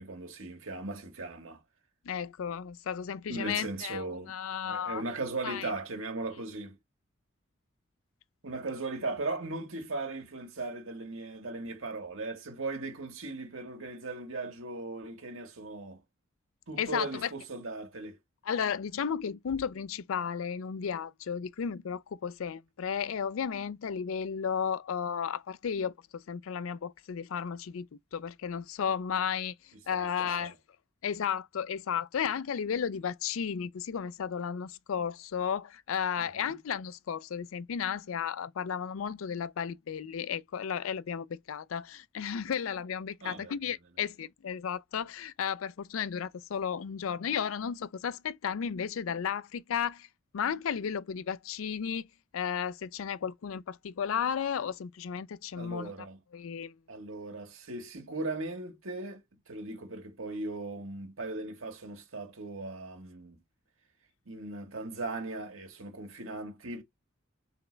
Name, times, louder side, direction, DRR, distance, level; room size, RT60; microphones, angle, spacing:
voice 1, 0.0-1.6 3.3-4.4 4.6-6.8 8.4-16.0 16.7-18.2 29.9-30.5 36.2-36.5 43.2-43.5 55.6-56.2 56.9-63.4 64.2-66.8, right 2 dB, 80° right, 1.6 m, -38 dB
voice 2, 2.1-5.0 5.4-5.7 16.8-17.3 18.5-29.5 29.9-30.5 31.0-50.1 50.3-52.1 52.3-55.9 56.3-56.7, left 7 dB, 85° left, 0.4 m, -34 dB
4.0 x 3.3 x 3.8 m
head